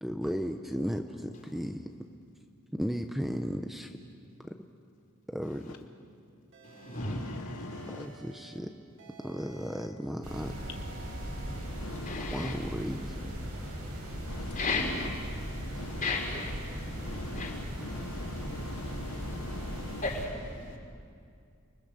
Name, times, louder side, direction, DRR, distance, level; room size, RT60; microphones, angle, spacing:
voice 1, 0.0-1.8 2.7-3.9 5.3-5.7 8.0-8.7 9.2-10.5 12.3-13.3, equal, ahead, 5 dB, 0.7 m, -35 dB
voice 2, 1.3-1.7 5.4-5.8 6.6-8.2 9.5-9.7 11.4-12.7 14.1-19.7 20.0-20.8, left 3 dB, 40° left, 0 dB, 4.0 m, -38 dB
sound 1, 6.5-7.3 7.7-8.6 9.0-9.9 10.3-11.6, right 3 dB, 55° right, 2.5 m, -52 dB
voice 3, 6.9-8.1 11.8-12.3 14.3-14.7 15.7-16.0 17.0-20.0, left 3 dB, 75° left, 6 dB, 0.9 m, -43 dB
sound 2, 10.2-20.2, equal, 85° right, 7.9 m, -38 dB
30.0 x 20.5 x 6.9 m, 2.3 s
head